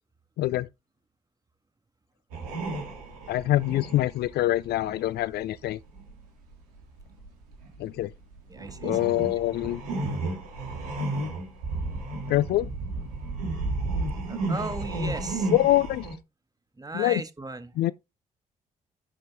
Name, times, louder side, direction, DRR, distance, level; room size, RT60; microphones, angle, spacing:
voice 1, 0.4-0.7 3.3-5.8 7.8-8.1 8.8-9.8 12.3-12.7 15.5-16.1 16.9-17.2 17.8-17.9, left 15 dB, 60° left, 0.4 m, -24 dB
sound 1, 2.3-6.2 6.5-16.2, right 2 dB, 80° right, 1.9 m, -33 dB
voice 2, 8.5-9.0 14.3-15.5 16.7-17.7, right 2 dB, 20° right, 1.8 m, -36 dB
11.0 x 5.2 x 3.6 m
figure-of-eight pair, 40°, 19 cm